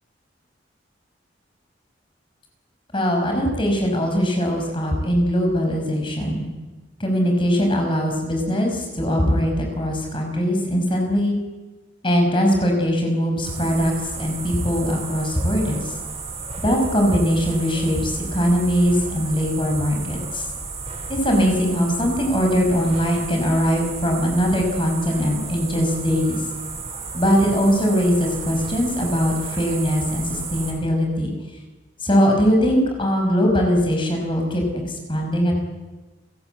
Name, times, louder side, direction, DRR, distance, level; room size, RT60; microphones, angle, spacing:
voice 1, 2.9-6.5 7.0-11.4 12.0-15.9 16.6-20.4 21.1-26.4 27.1-31.3 32.0-35.6, equal, 25° left, 2 dB, 5.7 m, -21 dB
sound 1, 13.4-30.7, right 4 dB, 35° right, 7.1 m, -33 dB
30.0 x 18.0 x 8.2 m, 1.2 s
head